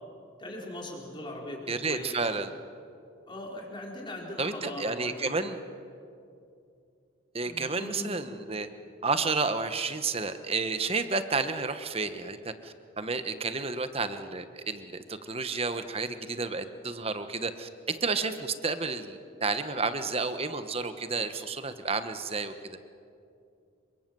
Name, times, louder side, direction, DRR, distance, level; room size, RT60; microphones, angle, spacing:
voice 1, 0.4-2.3 3.3-5.5 7.4-8.2, left 1 dB, 25° left, -1 dB, 4.4 m, -40 dB
voice 2, 1.7-2.5 4.4-5.6 7.3-8.7 9.0-22.8, right 4 dB, 30° right, 10 dB, 1.2 m, -31 dB
27.5 x 24.0 x 7.7 m, 2.5 s
head